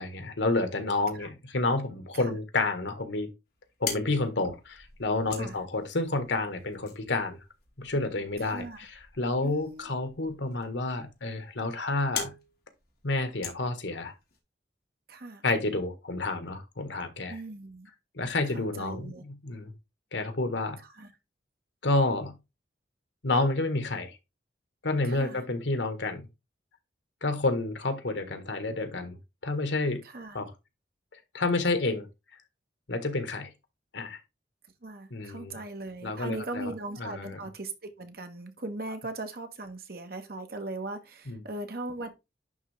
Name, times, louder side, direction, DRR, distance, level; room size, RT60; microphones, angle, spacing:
voice 1, 0.0-3.3 3.8-7.4 7.8-12.3 13.0-14.1 15.4-17.4 18.1-19.7 20.1-20.8 21.8-22.3 23.2-24.1 24.8-26.2 27.2-29.2 29.4-30.0 30.3-30.5 31.3-32.1 32.9-33.5 33.9-34.2 35.1-35.6 36.0-36.7 37.0-37.4 41.3-41.4, left 2 dB, 80° left, 1.5 m, -29 dB
sound 1, 3.5-14.4, left 6 dB, 55° left, 2.5 m, -43 dB
voice 2, 8.4-8.8 9.4-10.1 15.1-15.4 17.3-17.9 18.5-19.2 20.8-21.1 25.1-25.4 30.0-30.4 34.8-42.1, right 2 dB, 55° right, 1.3 m, -39 dB
11.0 x 3.7 x 3.4 m
head